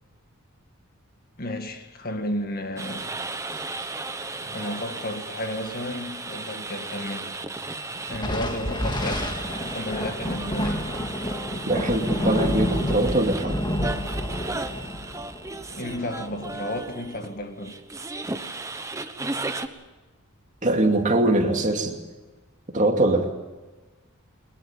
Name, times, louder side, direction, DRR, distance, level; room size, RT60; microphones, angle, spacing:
voice 1, 1.4-3.2 4.5-7.4 7.9-9.4 9.7-10.9 15.7-17.8, left 1 dB, 40° left, 2.0 m, -33 dB
sound 1, 2.8-19.7, right 3 dB, 15° right, 1.1 m, -35 dB
Thunder, 8.1-16.9, left 1 dB, 20° left, 2.1 m, -29 dB
voice 2, 11.7-13.6 20.6-22.0 22.7-23.3, right 2 dB, 35° right, 2.6 m, -22 dB
22.0 x 21.0 x 7.3 m
head